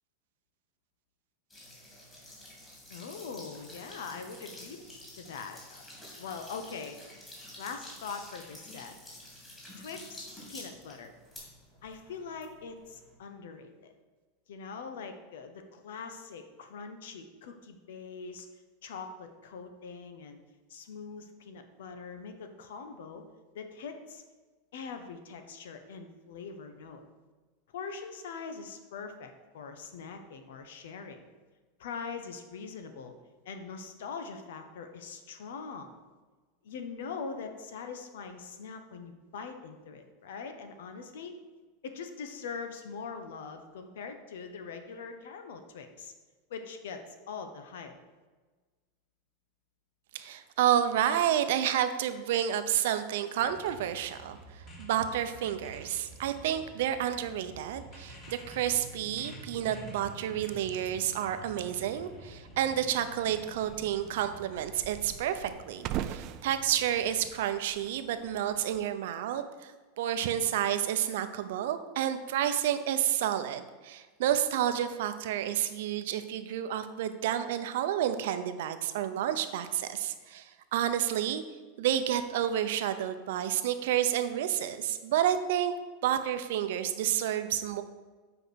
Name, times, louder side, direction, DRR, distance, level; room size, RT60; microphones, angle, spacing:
sound 1, 1.5-13.1, left 1 dB, 15° left, 2.7 m, -49 dB
voice 1, 2.9-4.8 5.2-5.8 6.2-7.0 7.6-8.9 9.8-11.1 11.8-13.9 14.5-18.5 18.8-20.4 20.7-23.2 23.5-24.2 24.7-27.0 27.7-31.2 31.8-33.1 33.4-35.9 36.6-41.3 41.8-46.1 46.5-47.9, left 5 dB, 85° left, 7 dB, 1.1 m, -42 dB
voice 2, 50.1-81.4 81.8-85.7 86.0-87.8, right 10 dB, 70° right, 10 dB, 0.7 m, -30 dB
sound 2, 53.4-67.3, equal, 30° left, 2.7 m, -49 dB
sound 3, 62.9-68.9, right 11 dB, 40° right, 0.4 m, -42 dB
8.0 x 4.9 x 6.4 m, 1.3 s
supercardioid pair, 160°, 0 cm